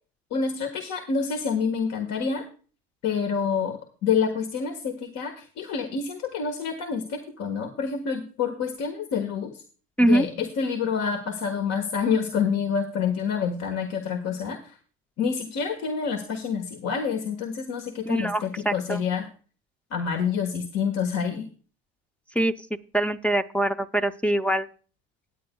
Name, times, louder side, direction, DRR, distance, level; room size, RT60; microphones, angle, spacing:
voice 1, 0.3-2.4 3.0-9.6 10.0-14.6 15.2-19.3 19.9-21.5, left 6 dB, 55° left, 5 dB, 1.5 m, -27 dB
voice 2, 18.1-19.0 22.4-22.5 22.9-24.7, right 1 dB, 5° left, 9 dB, 0.6 m, -23 dB
17.5 x 9.3 x 2.3 m, 0.38 s
supercardioid pair, 100°, 32 cm